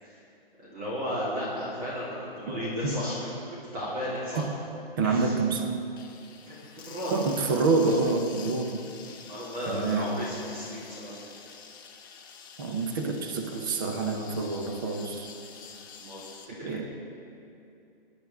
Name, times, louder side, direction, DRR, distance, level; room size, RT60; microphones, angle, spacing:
voice 1, 0.6-4.4 5.0-5.3 6.5-7.1 9.0-11.3 16.0-16.8, equal, 40° right, -9 dB, 3.6 m, -35 dB
voice 2, 5.0-5.8 7.0-8.9 9.7-10.3 12.6-15.3 16.6-16.9, right 3 dB, 20° right, 4 dB, 0.6 m, -27 dB
sound 1, 6.0-16.5, left 6 dB, 20° left, 0.8 m, -47 dB
21.5 x 10.5 x 3.5 m, 2.6 s
hypercardioid pair, 165°, 30 cm